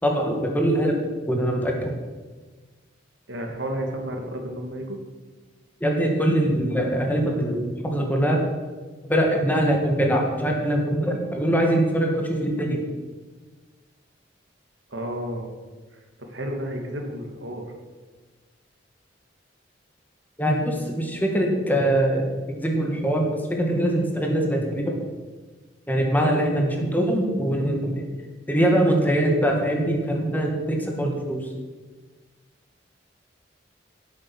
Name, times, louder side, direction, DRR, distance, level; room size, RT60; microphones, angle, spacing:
voice 1, 0.0-1.9 5.8-8.4 9.1-12.8 20.4-25.0 25.9-28.0 28.5-31.5, right 1 dB, 10° left, 1 dB, 2.2 m, -23 dB
voice 2, 3.3-5.0 14.9-15.5 15.9-17.7, right 1 dB, 75° right, 2 dB, 2.4 m, -32 dB
17.0 x 8.5 x 6.3 m, 1.4 s
head